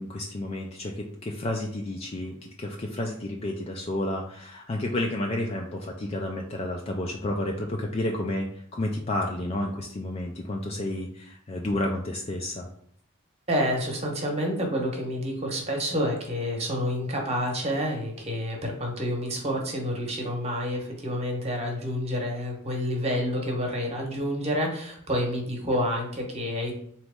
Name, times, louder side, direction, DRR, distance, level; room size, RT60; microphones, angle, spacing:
voice 1, 0.0-12.7, left 1 dB, 30° left, 0 dB, 0.4 m, -31 dB
voice 2, 13.5-26.7, equal, 30° right, 1 dB, 1.0 m, -28 dB
4.1 x 3.0 x 3.5 m, 0.66 s
head